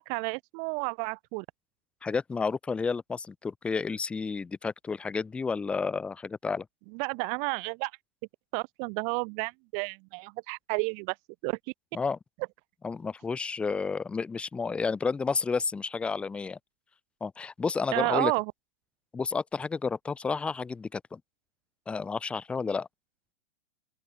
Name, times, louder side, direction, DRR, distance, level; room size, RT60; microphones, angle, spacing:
voice 1, 0.0-1.5 6.9-7.9 8.5-11.2 11.4-11.6 17.9-18.5, right 40 dB or more, 20° right, 2.1 m, -31 dB
voice 2, 2.0-6.7 11.9-12.2 12.8-16.6 17.2-18.3 19.1-21.2 21.9-22.9, left 5 dB, 5° left, 1.0 m, -31 dB
open air
hypercardioid pair, 180°, 35 cm